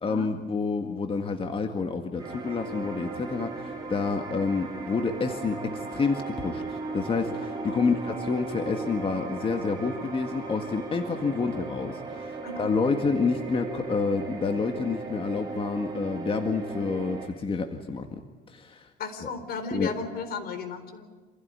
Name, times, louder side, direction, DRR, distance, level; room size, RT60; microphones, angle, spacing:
voice 1, 0.0-18.2 18.5-18.9 19.2-19.3 19.7-19.9, left 4 dB, 30° left, 5 dB, 2.0 m, -29 dB
sound 1, 2.2-17.3, right 3 dB, 20° right, 6.0 m, -37 dB
voice 2, 19.0-21.1, left 4 dB, 65° left, 9 dB, 4.0 m, -34 dB
27.5 x 16.0 x 9.8 m, 1.3 s
cardioid pair, 110°, 17 cm